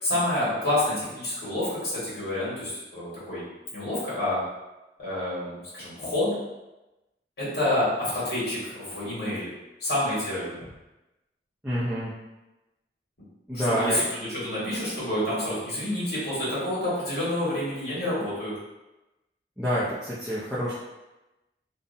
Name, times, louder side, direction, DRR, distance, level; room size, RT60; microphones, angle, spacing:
voice 1, 0.0-3.4 3.7-4.4 5.0-6.3 7.4-9.5 9.8-10.6 13.5-18.5, left 1 dB, 80° left, -10 dB, 1.4 m, -28 dB
voice 2, 11.6-12.1 13.5-14.0 19.6-20.7, equal, 5° right, -10 dB, 0.4 m, -27 dB
2.6 x 2.1 x 2.5 m, 1.0 s
head